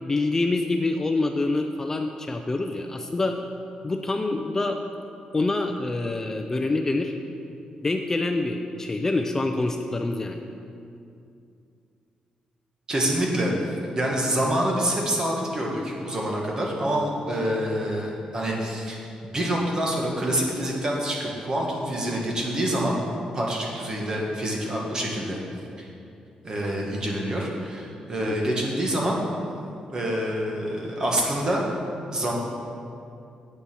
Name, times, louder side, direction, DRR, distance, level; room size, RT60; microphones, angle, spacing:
voice 1, 0.0-3.4 3.8-4.8 5.3-7.1 7.8-10.4 28.3-28.5, left 2 dB, 20° left, 4 dB, 0.4 m, -26 dB
voice 2, 12.9-13.5 13.9-23.0 23.3-25.4 25.8-25.9 26.4-29.2 29.9-31.7 32.1-32.4, right 1 dB, 30° right, -2 dB, 1.7 m, -26 dB
8.3 x 7.3 x 6.2 m, 2.5 s
wide cardioid pair, 140°, 2 cm